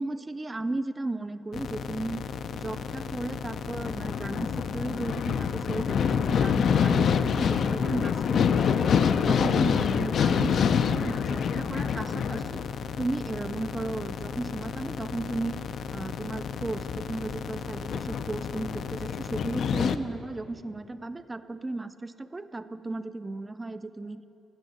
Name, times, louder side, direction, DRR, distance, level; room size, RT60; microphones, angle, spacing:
voice 1, 0.0-2.2 2.5-9.0 9.3-12.6 13.0-24.2, right 2 dB, 20° right, 12 dB, 0.4 m, -35 dB
sound 1, 1.5-20.0, left 7 dB, 60° left, 0.3 m, -27 dB
16.5 x 6.3 x 4.0 m, 3.0 s
cardioid pair, 90°, 0 cm